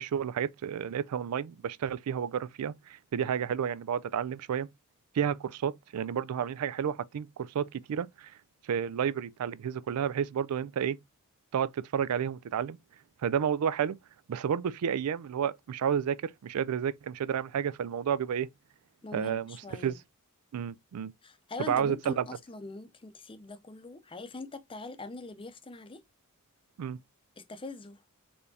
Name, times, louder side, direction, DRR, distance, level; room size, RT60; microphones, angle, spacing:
voice 1, 0.0-4.7 5.1-8.3 8.6-11.0 11.5-12.8 13.2-14.0 14.3-18.5 19.1-19.6 19.8-20.0 20.5-21.1 21.7-22.2 26.8-27.0, right 8 dB, 80° right, 0.4 m, -31 dB
voice 2, 19.0-20.0 21.2-26.0 27.4-28.0, left 3 dB, 25° left, 0.6 m, -43 dB
4.3 x 3.3 x 2.7 m
head